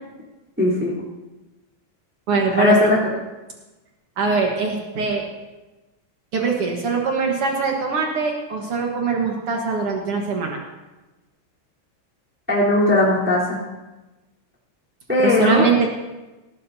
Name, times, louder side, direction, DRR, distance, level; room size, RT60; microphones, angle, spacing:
voice 1, 0.6-0.9 2.6-3.0 12.5-13.6 15.1-15.6, left 2 dB, 5° right, -6 dB, 2.9 m, -18 dB
voice 2, 2.3-2.9 4.2-5.2 6.3-10.6 15.2-15.9, right 4 dB, 90° right, 0 dB, 1.2 m, -22 dB
19.0 x 16.0 x 2.8 m, 1.1 s
omnidirectional pair, 4.9 m